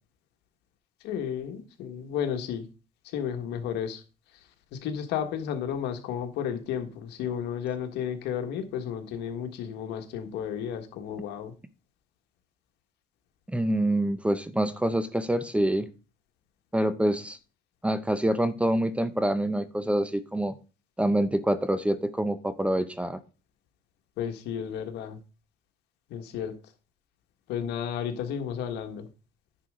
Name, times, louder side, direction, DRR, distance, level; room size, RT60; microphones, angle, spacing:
voice 1, 1.0-2.7 3.1-4.0 4.7-11.5 24.2-25.2 26.1-26.5 27.5-29.1, left 8 dB, 85° left, 6 dB, 1.6 m, -32 dB
voice 2, 13.5-15.9 16.7-17.4 17.8-20.5 21.0-23.2, right 1 dB, 5° right, 13 dB, 0.7 m, -26 dB
10.0 x 6.4 x 3.7 m, 0.33 s
cardioid pair, 110°, 17 cm